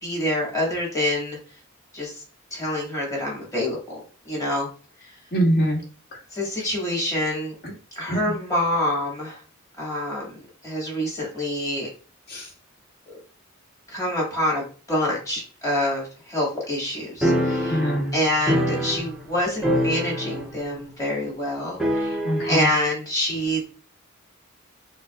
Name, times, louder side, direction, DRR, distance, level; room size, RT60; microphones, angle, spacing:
voice 1, 0.0-1.4 1.9-2.2 2.5-3.8 4.2-4.7 5.0-5.1 6.3-7.5 7.9-9.4 9.8-10.3 10.6-11.9 13.1-13.2 13.9-17.8 18.1-22.2 22.5-23.6, left 1 dB, 15° left, -4 dB, 1.7 m, -26 dB
voice 2, 5.3-5.8 6.1-6.2 8.1-8.2 12.3-12.5 17.7-18.2 22.2-22.7, right 1 dB, 50° left, -2 dB, 1.4 m, -23 dB
sound 1, 17.2-19.3 19.6-20.6 20.9-21.0 21.8-22.6, equal, 5° right, 0.5 m, -24 dB
6.1 x 2.1 x 2.3 m, 0.37 s
head